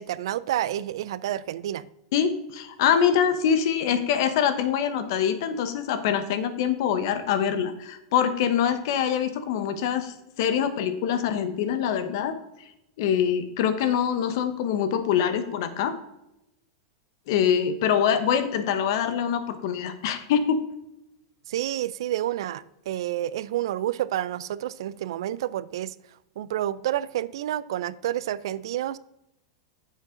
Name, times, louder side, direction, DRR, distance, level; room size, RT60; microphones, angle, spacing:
voice 1, 0.0-1.9 21.5-25.9 26.4-29.0, right 12 dB, 70° right, 18 dB, 0.4 m, -29 dB
voice 2, 2.1-12.4 13.0-15.9 17.3-20.6, left 8 dB, 55° left, 10 dB, 1.0 m, -24 dB
9.3 x 7.3 x 3.8 m, 0.86 s
supercardioid pair, 165°, 3 cm